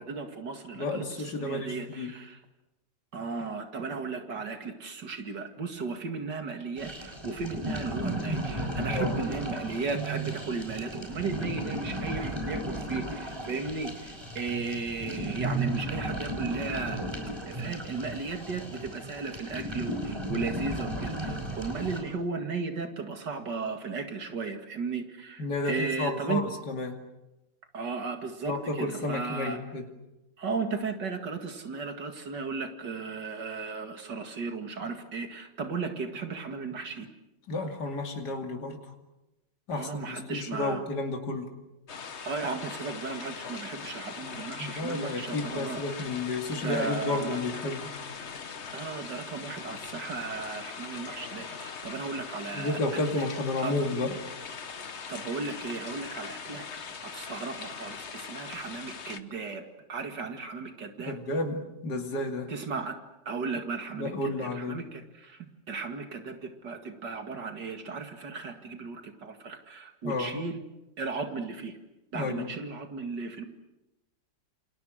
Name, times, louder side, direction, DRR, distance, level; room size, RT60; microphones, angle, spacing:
voice 1, 0.0-2.4 3.1-17.0 17.5-26.4 27.7-29.6 30.4-37.1 39.7-40.8 42.2-46.0 46.6-47.4 48.7-52.8 53.1-53.2 53.6-53.7 55.1-59.6 59.9-61.2 62.5-63.0 63.3-64.1 64.4-70.6 71.0-71.8 72.1-73.5, right 4 dB, 75° right, 5 dB, 2.7 m, -35 dB
voice 2, 0.7-2.1 8.9-9.2 25.4-27.0 28.4-29.9 37.5-38.8 39.7-41.5 44.6-47.9 52.5-54.2 61.0-62.5 63.9-64.8 70.0-70.4 72.1-72.5, left 2 dB, 70° left, 3 dB, 3.2 m, -32 dB
sound 1, 6.8-22.0, right 1 dB, 15° right, 5.1 m, -35 dB
sound 2, 41.9-59.2, left 6 dB, 45° left, 1.3 m, -41 dB
28.5 x 27.5 x 6.5 m, 0.96 s
omnidirectional pair, 1.9 m